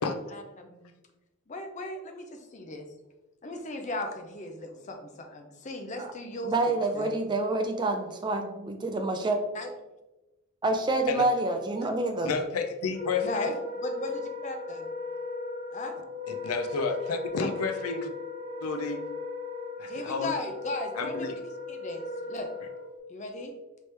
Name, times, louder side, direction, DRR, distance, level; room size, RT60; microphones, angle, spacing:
voice 1, 0.3-0.9 1.5-2.9 3.4-6.5 6.9-7.1 9.5-9.7 13.2-13.5 13.8-14.9 15.7-15.9 17.3-17.5 19.9-21.3 21.7-22.5 23.1-23.5, left 2 dB, 35° left, 5 dB, 0.5 m, -36 dB
voice 2, 6.4-9.4 10.6-12.3, right 2 dB, 20° right, 4 dB, 0.4 m, -27 dB
voice 3, 12.2-13.5 16.3-18.1 18.6-19.1 19.8-20.3 21.0-21.3, left 4 dB, 85° left, 7 dB, 0.5 m, -31 dB
Wind instrument woodwind instrument, 12.9-23.0, left 3 dB, 50° right, 0.8 m, -37 dB
4.3 x 3.1 x 3.3 m, 1.0 s
head